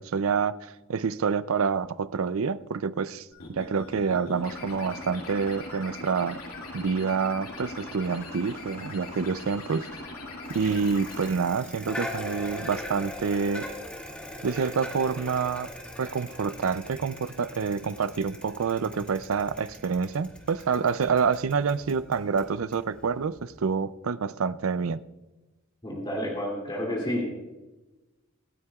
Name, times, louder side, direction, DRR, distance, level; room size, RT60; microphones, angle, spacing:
voice 1, 0.0-6.4 6.7-9.9 10.5-13.7 14.4-15.7 16.0-25.0, right 5 dB, 70° right, 0.5 m, -27 dB
sound 1, 3.3-11.3, left 2 dB, 90° left, 2.5 m, -40 dB
Bicycle, 10.5-23.6, left 1 dB, 5° left, 2.1 m, -41 dB
voice 2, 25.8-27.3, equal, 25° left, 2.7 m, -30 dB
26.0 x 9.7 x 2.4 m
head